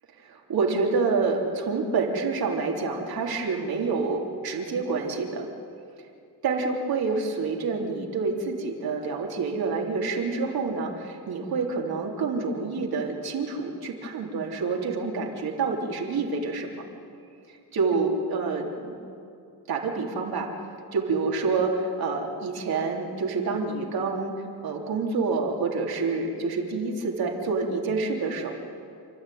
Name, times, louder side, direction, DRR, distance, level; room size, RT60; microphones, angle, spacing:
voice 1, 0.2-5.5 6.4-16.8 17.7-19.0 19.7-20.5 20.9-24.4 24.6-28.5, right 4 dB, 65° right, 0 dB, 3.6 m, -27 dB
29.0 x 12.5 x 9.4 m, 2.5 s
cardioid pair, 110°, 39 cm